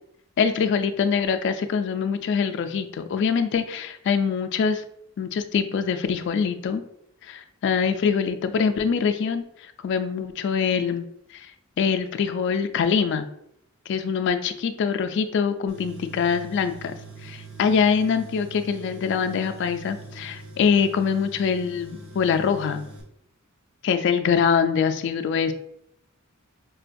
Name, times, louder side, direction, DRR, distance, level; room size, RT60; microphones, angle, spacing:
voice 1, 0.4-4.8 5.2-6.8 7.2-9.4 9.8-11.1 11.3-11.5 11.8-13.3 13.9-16.9 17.2-22.8 23.8-25.5, left 6 dB, 60° left, 8 dB, 0.3 m, -24 dB
Tools, 15.7-23.0, right 3 dB, 80° right, 1.0 m, -43 dB
4.9 x 2.2 x 2.5 m, 0.74 s
head